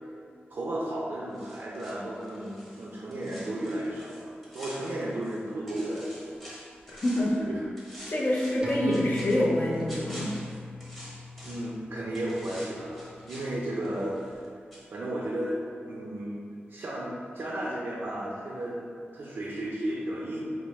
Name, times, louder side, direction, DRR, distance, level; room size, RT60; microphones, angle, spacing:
voice 1, 0.5-6.4 7.4-7.6 11.4-14.4 14.9-16.4 16.7-18.9 19.1-20.5, right 1 dB, 70° right, -4 dB, 0.4 m, -34 dB
sound 1, 1.3-5.4 5.7-7.4 7.8-11.8 12.1-14.5 14.7-14.8, equal, 5° left, 0.8 m, -47 dB
voice 2, 6.9-7.4 8.1-10.4, left 1 dB, 45° left, -3 dB, 0.6 m, -26 dB
sound 2, 8.6-13.6 13.9-14.0, left 1 dB, 20° right, 0.5 m, -38 dB
4.2 x 2.0 x 3.0 m, 2.3 s
wide cardioid pair, 85°, 4 cm